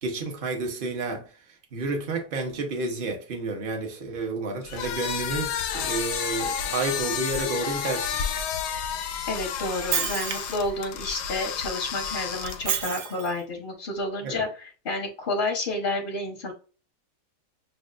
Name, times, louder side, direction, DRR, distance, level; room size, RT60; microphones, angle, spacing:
voice 1, 0.0-1.2 1.7-8.2 14.2-14.4, right 3 dB, 40° right, 0.8 m, -30 dB
sound 1, 4.6-12.8, left 7 dB, 75° left, 1.2 m, -31 dB
voice 2, 9.3-16.5, left 2 dB, 45° left, 0.8 m, -30 dB
Shatter, 9.6-10.7 12.5-13.4, right 8 dB, 75° right, 1.2 m, -29 dB
6.6 x 2.3 x 2.4 m
omnidirectional pair, 1.9 m